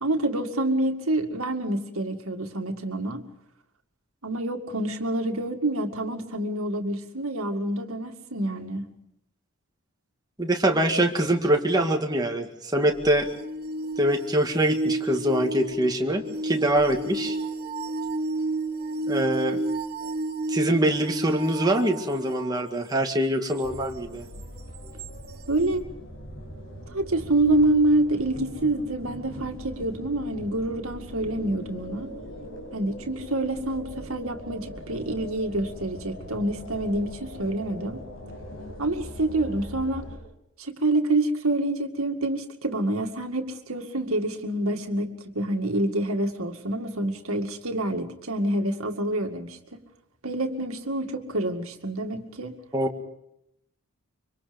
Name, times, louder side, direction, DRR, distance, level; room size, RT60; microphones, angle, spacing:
voice 1, 0.0-3.2 4.2-8.9 25.5-25.8 26.9-32.1 32.7-38.0 38.8-40.1 40.6-49.8 50.2-52.5, right 1 dB, 75° right, 5 dB, 2.2 m, -27 dB
voice 2, 10.4-13.3 14.0-17.4 19.1-19.6 20.5-24.2 52.7-53.0, right 1 dB, 20° right, 2 dB, 2.0 m, -24 dB
sound 1, 12.9-22.7 25.0-25.1, right 2 dB, 45° right, 1.4 m, -31 dB
sound 2, 23.6-40.2, equal, 60° left, 6.7 m, -41 dB
25.5 x 24.5 x 5.3 m, 0.80 s
head